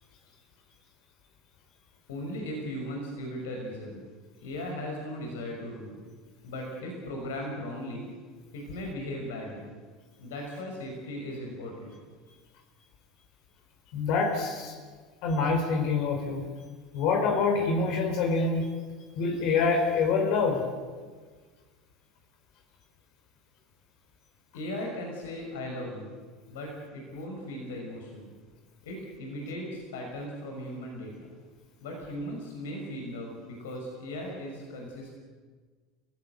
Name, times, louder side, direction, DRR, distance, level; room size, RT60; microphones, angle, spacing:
voice 1, 2.1-4.0 4.4-6.0 6.4-8.1 8.5-9.7 10.2-12.0 24.5-26.2 26.5-28.4 28.8-31.3 31.8-35.1, left 1 dB, 75° left, 1 dB, 6.0 m, -37 dB
voice 2, 13.9-14.7 15.2-16.5 16.9-18.7 19.1-20.7, left 4 dB, 60° left, 4 dB, 4.5 m, -26 dB
29.5 x 16.5 x 8.1 m, 1.5 s
hypercardioid pair, 75°, 0 cm